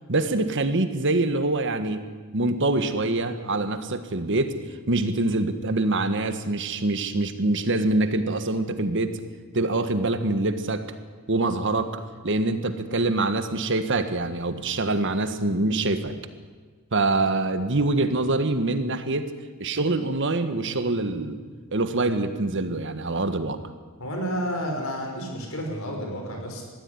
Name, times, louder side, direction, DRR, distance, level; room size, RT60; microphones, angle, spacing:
voice 1, 0.1-2.0 2.3-4.5 4.9-9.2 9.5-10.8 11.3-16.1 16.9-19.3 19.6-21.4 21.7-23.6, right 2 dB, 60° right, 9 dB, 1.6 m, -25 dB
voice 2, 24.0-26.6, equal, 70° left, 2 dB, 5.9 m, -30 dB
21.5 x 15.0 x 9.8 m, 1.5 s
head